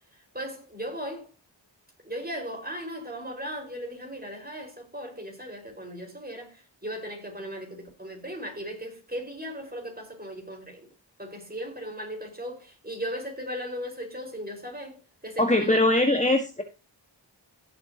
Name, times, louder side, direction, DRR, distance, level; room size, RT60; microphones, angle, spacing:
voice 1, 0.3-1.3 2.0-10.9 11.2-15.8, equal, 20° right, 5.3 m, -37 dB
voice 2, 15.4-16.6, left 1 dB, 15° left, 1.6 m, -21 dB
17.0 x 7.2 x 2.9 m
wide cardioid pair, 60°, 44 cm